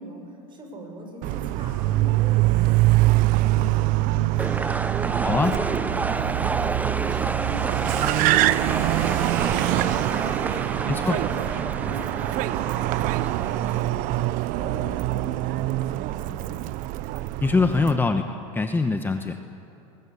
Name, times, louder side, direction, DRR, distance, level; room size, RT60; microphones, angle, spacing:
voice 1, 0.0-4.7 5.0-10.3 10.7-14.2 14.6-16.6, right 1 dB, 30° right, 3 dB, 6.6 m, -41 dB
Car, 1.2-18.0, right 17 dB, 55° right, 0.8 m, -24 dB
sound 1, 4.4-13.8, right 3 dB, 10° right, 0.7 m, -30 dB
voice 2, 5.2-5.5 10.8-11.2 17.4-18.3 18.5-19.4, left 3 dB, 15° left, 6 dB, 1.1 m, -22 dB
23.5 x 22.0 x 8.3 m, 2.8 s
supercardioid pair, 120°, 16 cm